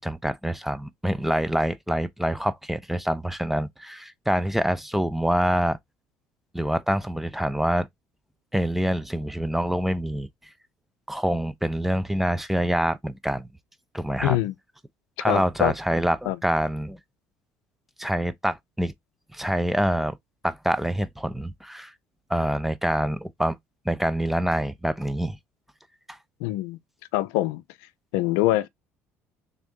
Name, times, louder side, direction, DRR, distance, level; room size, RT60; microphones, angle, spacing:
voice 1, 0.0-5.8 6.5-7.9 8.5-10.3 11.1-13.5 13.9-14.4 15.2-17.0 18.0-18.9 19.3-20.2 20.4-21.9 22.3-23.6 23.9-25.4 26.1-26.2, equal, 5° right, 0.5 m, -26 dB
voice 2, 14.2-14.5 15.3-15.7 16.3-16.4 26.4-26.8 27.1-27.6 28.1-28.7, left 16 dB, 80° left, 0.4 m, -24 dB
3.5 x 2.6 x 3.6 m
hypercardioid pair, 70°, 6 cm